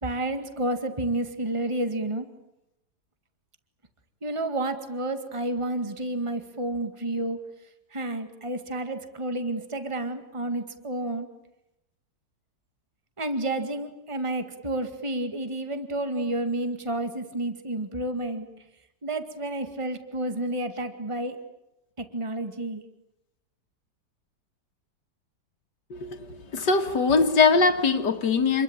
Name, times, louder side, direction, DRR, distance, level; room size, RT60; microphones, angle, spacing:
voice 1, 0.0-2.3 4.2-7.4 7.9-11.3 13.2-18.5 19.0-21.4 22.0-22.8, right 1 dB, 20° right, 2.0 m, -30 dB
voice 2, 26.5-28.6, left 4 dB, 90° left, 2.3 m, -21 dB
28.0 x 22.0 x 8.9 m
omnidirectional pair, 1.8 m